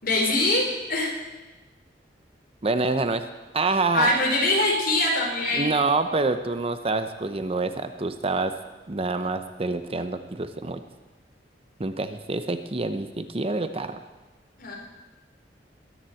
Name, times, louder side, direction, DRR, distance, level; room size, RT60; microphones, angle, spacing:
voice 1, 0.0-1.1 3.9-5.7 14.6-14.7, left 2 dB, 55° left, -1 dB, 4.1 m, -23 dB
voice 2, 2.6-3.2 3.5-4.1 5.5-8.5 8.9-10.8 11.8-14.0, right 3 dB, 35° right, 9 dB, 0.8 m, -26 dB
21.0 x 7.3 x 7.8 m, 1.2 s
head